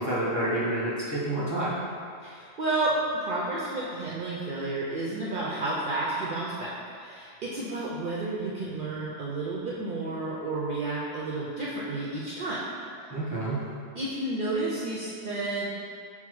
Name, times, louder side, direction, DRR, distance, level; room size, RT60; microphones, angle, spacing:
voice 1, 0.0-1.8 13.1-13.6, right 1 dB, 15° left, -8 dB, 0.7 m, -28 dB
voice 2, 2.2-2.9 3.2-6.7 7.0-12.6 14.0-15.7, right 2 dB, 60° right, -6 dB, 0.6 m, -31 dB
5.6 x 2.0 x 4.6 m, 2.3 s
omnidirectional pair, 1.2 m